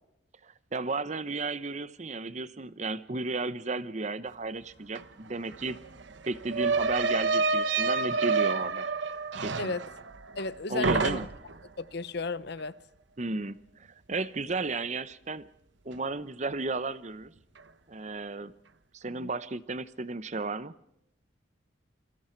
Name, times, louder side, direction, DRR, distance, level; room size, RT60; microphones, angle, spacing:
voice 1, 0.4-5.8 6.3-8.9 9.4-9.8 10.7-11.3 13.2-15.5 15.8-17.3 17.9-18.5 18.9-20.7, right 3 dB, 35° right, 0.8 m, -34 dB
sound 1, 5.0-5.1 5.3-10.5 10.8-11.6, right 4 dB, 65° right, 1.1 m, -28 dB
voice 2, 10.4-11.2 11.8-12.8 19.1-19.3, left 3 dB, 55° left, 0.8 m, -34 dB
29.5 x 24.0 x 4.5 m
head